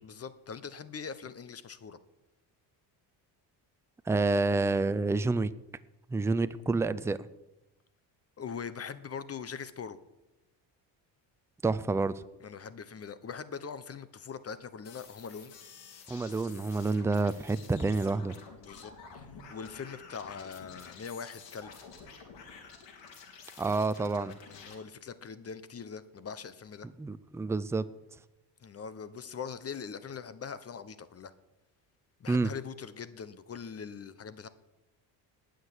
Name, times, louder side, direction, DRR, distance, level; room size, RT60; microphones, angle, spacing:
voice 1, 0.0-2.0 8.4-10.0 12.4-15.5 18.6-21.9 24.5-26.9 28.6-31.3 32.2-34.5, left 6 dB, 30° left, 14 dB, 1.1 m, -42 dB
voice 2, 4.1-5.5 6.1-7.2 11.6-12.2 16.1-18.4 23.6-24.4 27.0-27.8 32.3-32.5, right 3 dB, 5° right, 13 dB, 0.5 m, -28 dB
sound 1, 14.8-24.7, left 5 dB, 75° left, 4.0 m, -50 dB
19.0 x 6.6 x 9.9 m, 0.96 s
cardioid pair, 120°, 44 cm